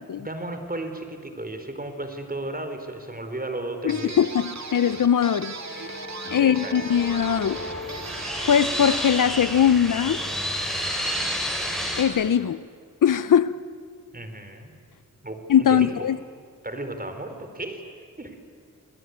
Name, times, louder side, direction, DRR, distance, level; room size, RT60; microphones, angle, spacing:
voice 1, 0.2-4.2 6.3-6.8 14.1-14.7 15.2-16.1 16.6-17.9 18.2-18.5, right 2 dB, 25° right, 4.3 m, -34 dB
voice 2, 3.8-6.0 6.3-7.6 8.5-10.3 12.0-12.6 13.0-13.6 15.5-16.2, left 8 dB, 75° left, 0.8 m, -21 dB
sound 1, 3.9-9.2, right 4 dB, 55° right, 2.2 m, -38 dB
sound 2, 4.9-10.3, left 3 dB, 35° left, 3.3 m, -41 dB
sound 3, 6.9-12.0, equal, ahead, 7.5 m, -30 dB
29.0 x 20.5 x 9.6 m
cardioid pair, 50°, 32 cm